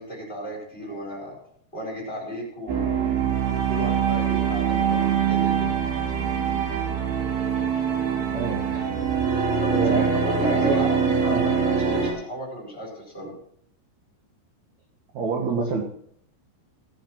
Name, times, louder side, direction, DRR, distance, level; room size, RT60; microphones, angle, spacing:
voice 1, 0.0-1.4 1.7-5.7 9.6-13.4, equal, 15° left, -3 dB, 4.6 m, -34 dB
sound 1, 2.7-12.1, right 7 dB, 90° right, 5.6 m, -23 dB
voice 2, 8.3-8.9 9.3-9.5 9.8-10.1 10.5-11.5 15.1-15.8, right 4 dB, 60° right, 0 dB, 2.1 m, -29 dB
18.0 x 7.8 x 4.5 m, 0.65 s
omnidirectional pair, 5.2 m